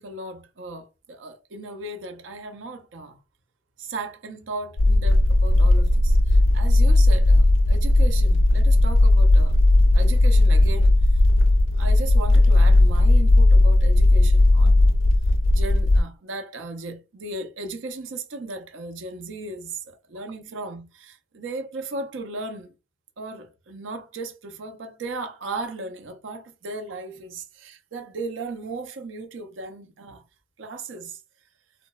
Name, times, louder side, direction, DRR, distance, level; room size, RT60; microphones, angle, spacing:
voice 1, 0.0-3.2 3.8-9.6 9.9-11.2 11.8-14.9 15.5-22.7 23.2-30.2 30.6-31.2, right 3 dB, 75° right, 0.5 m, -36 dB
sound 1, 4.8-16.0, left 2 dB, 80° left, 0.4 m, -16 dB
2.9 x 2.0 x 2.2 m
head